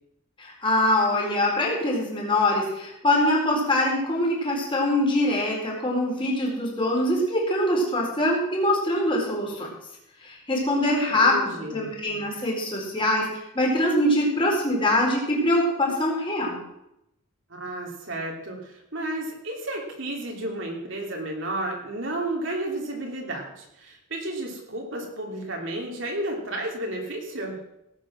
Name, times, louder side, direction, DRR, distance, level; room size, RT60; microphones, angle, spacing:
voice 1, 0.4-9.7 10.2-16.6, left 1 dB, 25° left, -2 dB, 4.3 m, -23 dB
voice 2, 11.2-11.9 17.5-27.6, right 1 dB, 60° right, 0 dB, 2.8 m, -32 dB
17.5 x 8.8 x 6.2 m, 0.83 s
head